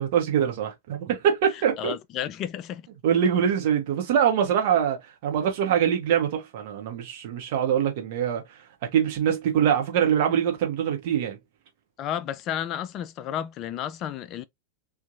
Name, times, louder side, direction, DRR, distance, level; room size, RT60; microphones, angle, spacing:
voice 1, 0.0-1.9 3.0-8.4 8.8-11.4, right 8 dB, 50° right, 0.9 m, -24 dB
voice 2, 1.8-2.9 12.0-14.4, left 10 dB, 35° left, 0.4 m, -32 dB
2.7 x 2.4 x 2.5 m
figure-of-eight pair, 90°, 0 cm